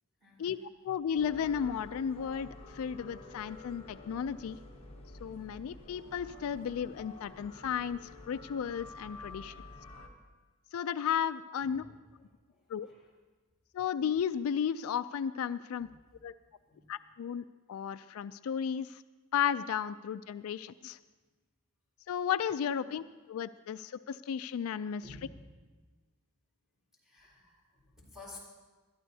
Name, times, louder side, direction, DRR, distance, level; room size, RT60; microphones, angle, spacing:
voice 1, 0.2-0.6 11.6-11.9 12.5-13.0 15.8-16.0 16.6-16.9 22.7-22.9 25.0-25.5 27.0-28.4, left 3 dB, ahead, -6 dB, 4.2 m, -53 dB
voice 2, 0.8-4.6 5.2-9.5 10.7-11.8 12.7-12.9 13.7-15.9 16.2-16.3 16.9-17.4 17.7-19.0 19.3-21.0 22.1-23.0 23.3-25.1, left 8 dB, 75° left, 14 dB, 0.3 m, -34 dB
sound 1, 1.1-10.1, left 2 dB, 30° left, 1.3 m, -50 dB
21.0 x 12.5 x 2.7 m, 1.3 s
head